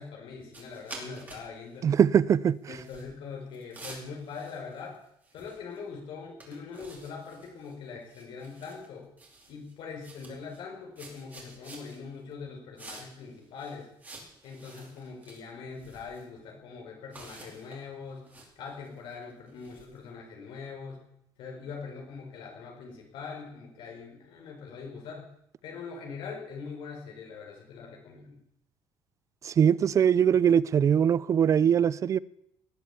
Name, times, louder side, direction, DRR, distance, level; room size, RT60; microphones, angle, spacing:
voice 1, 0.0-1.9 2.7-5.0 5.3-9.1 9.5-13.9 14.4-18.3 18.6-21.0 21.4-25.3 25.6-28.4, left 5 dB, 65° left, 5.1 m, -42 dB
sound 1, 0.5-1.5 1.7-1.9 2.6-3.1 3.5-5.0 5.2-5.8 6.1-6.2 6.4-7.7 8.0-8.9 9.2-9.7 10.0-10.6 11.0-12.0 12.8-13.3 13.6-15.4 15.8-16.2 17.1-20.0, right 2 dB, 20° right, 4.8 m, -49 dB
voice 2, 1.8-2.8 29.4-32.2, right 8 dB, 35° right, 0.5 m, -22 dB
18.5 x 8.8 x 8.4 m
cardioid pair, 140°, 9 cm